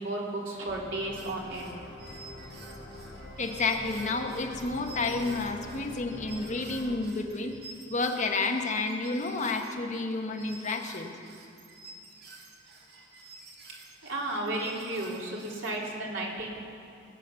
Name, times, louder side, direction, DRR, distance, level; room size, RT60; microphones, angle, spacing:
voice 1, 0.0-2.0 14.0-16.5, right 1 dB, 75° right, -3 dB, 3.2 m, -34 dB
sound 1, 0.7-7.0, left 1 dB, 60° left, 2.8 m, -45 dB
sound 2, 1.1-15.9, right 3 dB, 55° right, 2.4 m, -50 dB
voice 2, 3.4-7.6 7.9-11.1, left 3 dB, 40° left, 3 dB, 1.1 m, -30 dB
20.5 x 9.2 x 6.9 m, 2.6 s
head